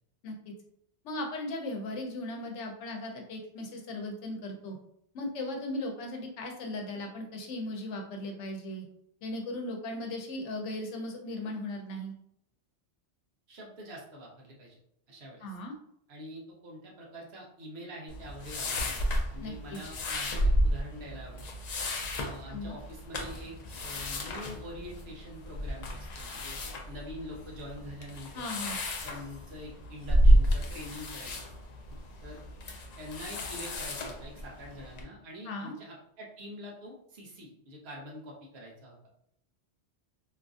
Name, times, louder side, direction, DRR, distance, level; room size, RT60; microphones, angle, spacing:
voice 1, 0.2-0.5 1.0-4.8 5.1-8.9 9.2-12.1 15.4-15.7 19.4-19.8 22.5-22.8 28.3-28.8 35.5-35.7, left 1 dB, 85° left, 2 dB, 1.0 m, -37 dB
voice 2, 13.5-14.7 15.1-15.5 16.1-21.5 22.2-23.5 23.8-26.6 26.9-28.4 29.0-31.5 32.2-32.4 33.0-39.0, equal, 65° right, -2 dB, 1.0 m, -45 dB
sound 1, 18.1-35.0, equal, 60° left, 0.4 m, -31 dB
3.0 x 2.4 x 2.4 m, 0.72 s
omnidirectional pair, 1.2 m